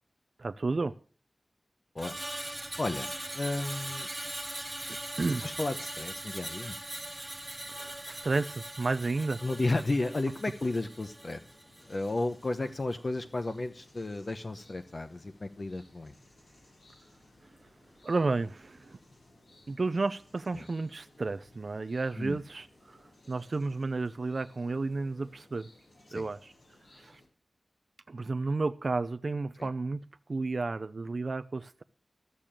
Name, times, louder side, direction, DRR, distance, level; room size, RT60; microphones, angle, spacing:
voice 1, 0.4-0.9 5.2-5.5 7.7-9.4 18.0-19.0 19.7-25.7 26.1-26.5 26.9-27.2 28.1-30.0 30.3-31.8, right 3 dB, 60° right, 10 dB, 0.6 m, -32 dB
Screech, 2.0-12.3 12.7-12.9, right 1 dB, 20° right, 1.1 m, -41 dB
voice 2, 2.8-4.1 5.4-6.8 9.4-11.4 11.8-16.1 20.5-20.6 22.2-22.4 26.1-26.3 29.6-29.7, left 2 dB, 45° left, 7 dB, 0.9 m, -33 dB
sound 1, 10.2-27.3, left 1 dB, 85° left, 7.6 m, -60 dB
14.0 x 6.9 x 7.4 m, 0.39 s
wide cardioid pair, 85°, 0 cm